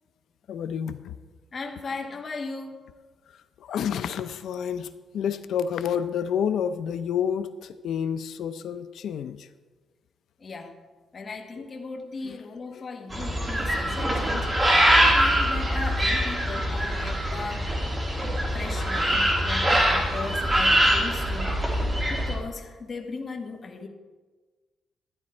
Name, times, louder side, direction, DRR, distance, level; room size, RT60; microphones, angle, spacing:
voice 1, 0.5-1.1 3.6-4.9 5.1-9.5 11.6-11.7 12.2-12.4 12.7-12.9 14.8-14.9, left 8 dB, 70° left, 11 dB, 0.5 m, -29 dB
voice 2, 1.5-2.8 10.4-10.7 11.1-14.5 14.8-17.6 18.5-21.6 22.1-23.9, left 4 dB, 30° left, 2 dB, 1.1 m, -37 dB
sound 1, 13.1-22.4, equal, 20° right, 1.6 m, -23 dB
12.0 x 9.8 x 4.3 m, 1.3 s
cardioid pair, 155°, 0 cm